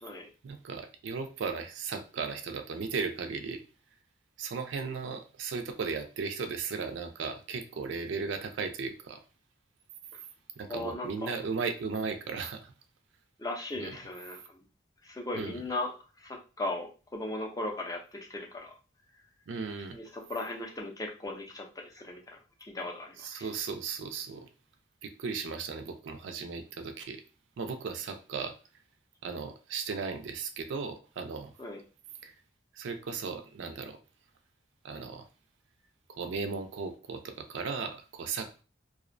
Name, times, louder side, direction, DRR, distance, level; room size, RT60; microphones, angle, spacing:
voice 1, 0.4-3.6 4.4-9.2 10.6-12.7 13.8-14.0 15.3-15.6 19.5-20.0 23.2-24.5 25.0-27.2 27.6-28.5 29.2-31.5 32.2-32.3 32.7-34.0 34.8-35.3 36.1-38.6, right 5 dB, 75° right, 7 dB, 0.4 m, -36 dB
voice 2, 10.7-11.3 13.4-14.6 15.0-18.7 19.9-22.4 22.7-23.5 31.6-31.8, left 2 dB, 20° left, 0 dB, 0.4 m, -37 dB
2.5 x 2.0 x 2.5 m, 0.34 s
head